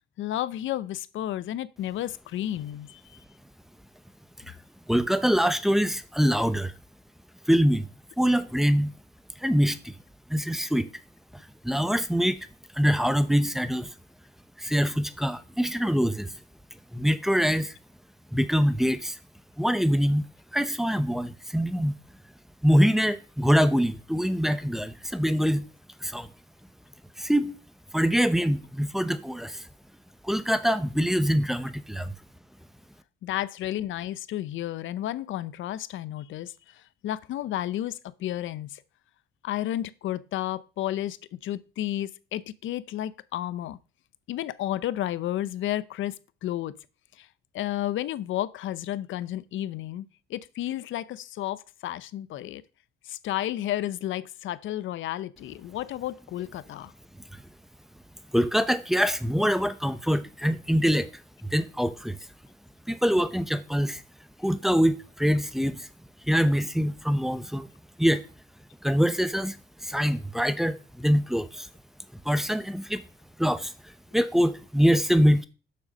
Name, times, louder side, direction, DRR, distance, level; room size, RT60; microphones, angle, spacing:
voice 1, 0.2-3.2 33.2-38.8 39.4-43.8 44.3-46.2 46.4-46.7 47.2-47.3 47.5-52.6 53.0-56.9, left 13 dB, 75° left, 0.6 m, -32 dB
voice 2, 4.9-6.7 7.5-7.9 8.2-8.9 9.4-9.9 10.3-10.9 11.6-12.4 12.7-13.9 14.6-16.3 16.9-17.7 18.3-19.2 19.6-20.2 20.5-21.9 22.6-25.6 26.0-26.3 27.2-27.5 27.9-29.7 30.2-32.1 58.3-62.2 62.9-64.0 64.4-65.9 66.3-67.7 68.0-68.2 68.8-69.6 69.8-71.7 72.2-73.0 73.4-73.7 74.1-75.4, equal, ahead, 0.8 m, -24 dB
6.9 x 6.1 x 5.2 m
cardioid pair, 90°, 20 cm